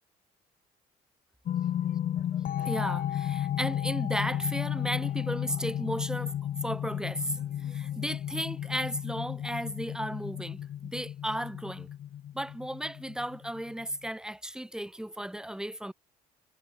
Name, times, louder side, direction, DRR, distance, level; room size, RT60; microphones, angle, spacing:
sound 1, 1.5-14.1, left 10 dB, 55° left, 3.3 m, -33 dB
voice 1, 1.7-2.0 2.3-6.3 6.6-11.9 12.3-15.9, right 1 dB, 5° right, 2.0 m, -35 dB
cardioid pair, 110°, 17 cm